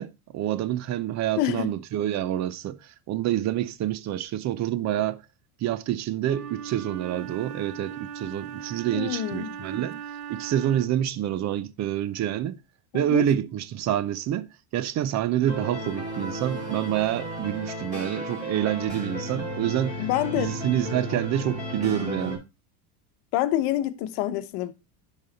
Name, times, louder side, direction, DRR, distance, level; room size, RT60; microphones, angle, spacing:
voice 1, 0.0-5.2 5.6-10.0 10.3-12.6 12.9-14.5 14.7-20.0 20.3-22.4, right 12 dB, 35° right, 0.6 m, -27 dB
voice 2, 1.4-1.7 8.9-9.8 12.9-13.3 20.0-20.6 23.3-24.7, left 13 dB, 65° left, 1.0 m, -27 dB
Wind instrument woodwind instrument, 6.2-11.1, right 8 dB, 85° right, 1.4 m, -39 dB
sound 1, 15.4-22.4, equal, 15° right, 4.6 m, -34 dB
10.5 x 4.1 x 4.1 m
supercardioid pair, 125°, 47 cm